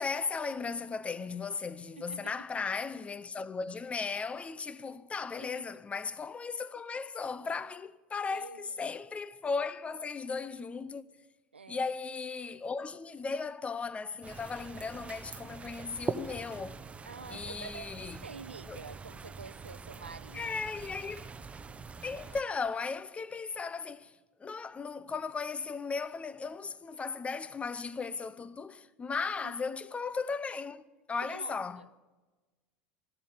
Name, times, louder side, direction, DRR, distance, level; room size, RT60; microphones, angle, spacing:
voice 1, 0.0-11.0 11.7-16.8 17.3-18.2 18.7-18.8 20.3-21.3 22.0-30.8 31.1-31.8, left 4 dB, 20° left, 0.7 m, -36 dB
voice 2, 2.0-2.3 5.4-5.5 8.3-8.8 11.5-11.9 17.0-17.9 18.2-20.5 29.4-29.5 31.2-31.9, right 5 dB, 90° right, 0.6 m, -47 dB
sound 1, 14.2-22.4, right 4 dB, 20° right, 0.9 m, -43 dB
13.0 x 12.5 x 8.9 m
figure-of-eight pair, 75°, 6 cm